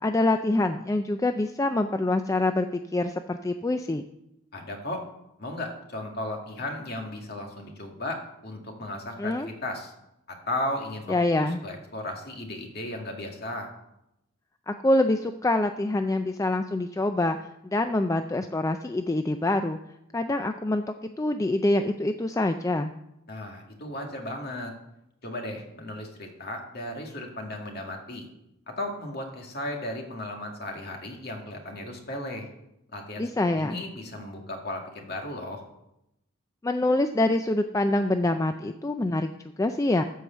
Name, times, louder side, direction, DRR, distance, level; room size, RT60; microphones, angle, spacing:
voice 1, 0.0-4.0 9.2-9.5 11.1-11.6 14.7-17.4 17.6-19.8 20.1-20.8 21.2-22.9 33.2-33.8 36.6-39.3 39.6-40.0, left 2 dB, 15° left, 7 dB, 0.3 m, -25 dB
voice 2, 4.5-5.0 5.4-9.9 10.3-13.7 23.3-24.7 25.2-28.3 28.7-32.5 32.9-33.3 33.5-35.6, left 1 dB, 50° left, 2 dB, 2.0 m, -35 dB
13.0 x 4.8 x 6.8 m, 0.85 s
head